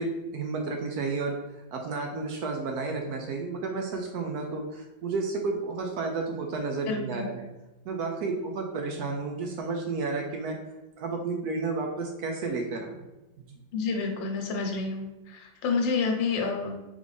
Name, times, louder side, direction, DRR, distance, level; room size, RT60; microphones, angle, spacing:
voice 1, 0.0-1.4 1.7-7.5 7.9-10.6 11.0-13.0, right 3 dB, 70° right, 2 dB, 1.0 m, -31 dB
voice 2, 6.9-7.2 13.7-16.9, left 4 dB, 85° left, 3 dB, 1.5 m, -29 dB
3.7 x 3.6 x 3.1 m, 1.0 s
omnidirectional pair, 2.0 m